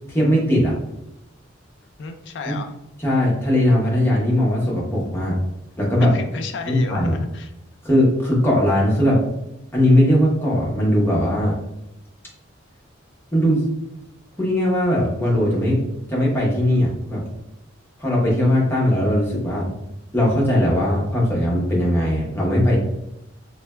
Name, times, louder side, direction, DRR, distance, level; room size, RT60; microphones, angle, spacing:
voice 1, 0.1-0.7 2.5-2.6 3.0-5.4 5.8-6.1 6.7-7.2 7.8-9.2 9.7-11.6 13.3-13.6 14.4-15.8 16.1-17.2 18.0-19.7 20.1-22.8, left 1 dB, 10° left, -5 dB, 0.7 m, -19 dB
voice 2, 2.0-2.7 6.0-7.5, left 4 dB, 60° left, 6 dB, 0.3 m, -33 dB
3.1 x 2.1 x 2.2 m, 0.90 s
head